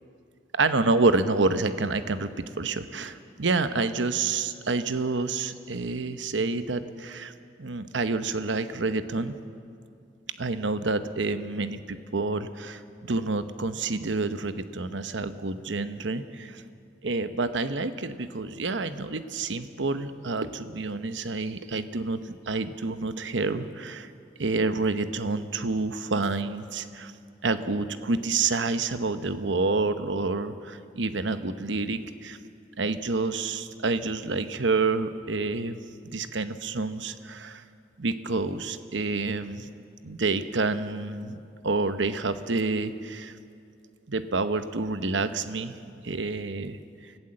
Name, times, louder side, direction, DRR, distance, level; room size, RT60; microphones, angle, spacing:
voice 1, 0.6-7.3 7.6-9.4 10.4-16.6 17.0-22.2 22.5-24.1 24.4-27.1 27.4-32.4 32.8-37.6 38.0-39.7 40.0-43.3 44.1-45.8 46.0-46.8, right 3 dB, 85° right, 10 dB, 1.0 m, -28 dB
25.0 x 16.0 x 7.8 m, 2.3 s
head